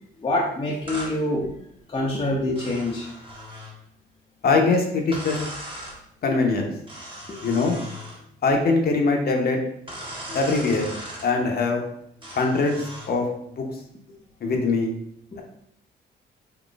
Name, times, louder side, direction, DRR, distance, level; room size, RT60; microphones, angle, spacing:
voice 1, 0.2-1.5 1.9-3.1 7.3-7.4 15.3-15.4, left 1 dB, 25° left, -4 dB, 0.7 m, -25 dB
sound 1, 0.9-1.2 2.6-3.8 5.1-6.0 6.9-8.2 9.9-11.3 12.2-13.1, equal, 25° right, 1.2 m, -38 dB
voice 2, 4.4-5.4 6.2-6.7 7.4-7.8 8.4-9.6 10.3-10.9 11.2-11.8 12.3-13.3 13.6-13.7 14.4-14.9, left 3 dB, 50° left, 2 dB, 0.8 m, -22 dB
3.9 x 2.9 x 2.4 m, 0.73 s
cardioid pair, 90°, 20 cm